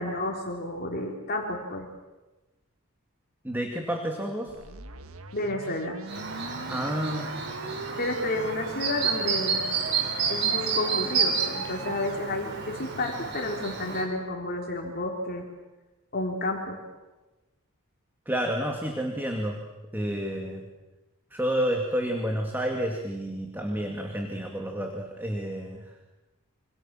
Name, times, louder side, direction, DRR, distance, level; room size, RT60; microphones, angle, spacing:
voice 1, 0.0-1.9 5.3-6.0 8.0-9.6 10.3-15.4 16.1-16.8, left 1 dB, 45° left, 1 dB, 3.5 m, -31 dB
voice 2, 3.4-4.5 6.7-7.4 18.3-19.6 19.9-20.7 21.3-25.8, equal, 10° right, 2 dB, 2.4 m, -30 dB
sound 1, 4.5-12.3, right 3 dB, 75° right, 1.6 m, -41 dB
Chirp tweet, 6.1-14.0, right 6 dB, 50° right, 5.8 m, -30 dB
27.0 x 26.0 x 7.5 m, 1.1 s
head